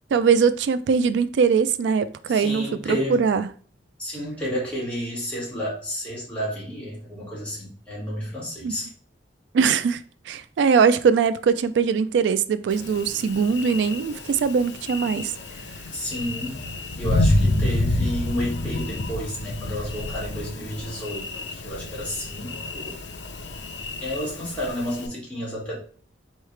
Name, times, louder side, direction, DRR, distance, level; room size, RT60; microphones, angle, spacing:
voice 1, 0.1-3.5 8.6-8.7 9.5-15.3, right 6 dB, 70° right, 0.3 m, -21 dB
voice 2, 2.3-3.2 4.0-8.9 15.9-16.7 17.0-23.0 24.0-25.8, equal, 5° left, 2.1 m, -31 dB
Thunder, 12.7-25.1, left 1 dB, 85° left, 0.7 m, -28 dB
4.6 x 3.2 x 3.2 m
head